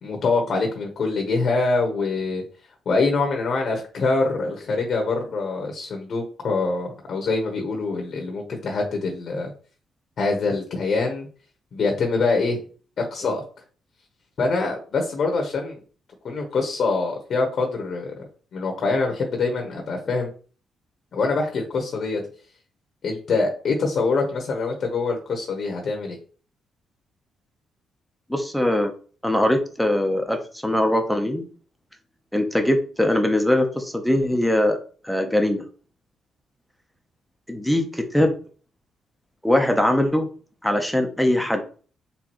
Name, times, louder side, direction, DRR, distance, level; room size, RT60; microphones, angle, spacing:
voice 1, 0.0-2.4 2.8-9.5 10.2-11.3 11.7-12.6 13.0-13.4 14.4-15.8 16.2-18.2 18.5-20.3 21.1-22.2 23.0-26.2, left 3 dB, 60° left, 2 dB, 1.1 m, -24 dB
voice 2, 28.3-28.9 29.2-30.4 30.6-31.4 32.3-34.8 35.0-35.6 37.5-38.3 39.4-40.3 40.6-41.6, left 1 dB, ahead, 4 dB, 1.0 m, -21 dB
4.5 x 3.4 x 3.1 m, 0.40 s
supercardioid pair, 65°, 0 cm